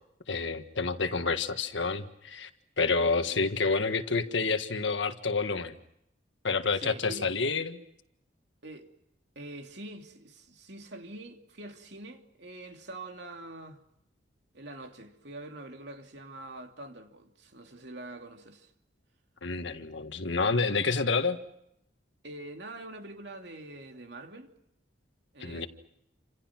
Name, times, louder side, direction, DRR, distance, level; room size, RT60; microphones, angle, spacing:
voice 1, 0.3-2.5 2.8-5.7 6.4-7.8 19.4-21.4 25.4-25.7, left 4 dB, 75° left, 1.7 m, -28 dB
voice 2, 6.7-7.3 8.6-8.9 9.3-13.8 14.5-18.7 22.2-24.5 25.3-25.7, right 2 dB, 65° right, 2.9 m, -44 dB
29.0 x 27.0 x 6.1 m
head